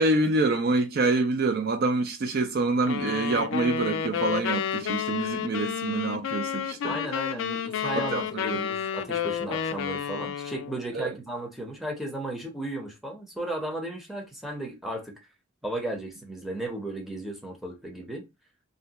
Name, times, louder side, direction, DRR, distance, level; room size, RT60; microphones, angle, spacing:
voice 1, 0.0-7.0 7.8-8.6 10.9-11.1, right 2 dB, 50° right, 0.4 m, -26 dB
sound 1, 2.9-10.8, left 8 dB, 65° left, 0.3 m, -30 dB
voice 2, 6.8-15.1 15.6-18.3, right 1 dB, ahead, 0.7 m, -35 dB
2.6 x 2.1 x 3.9 m
head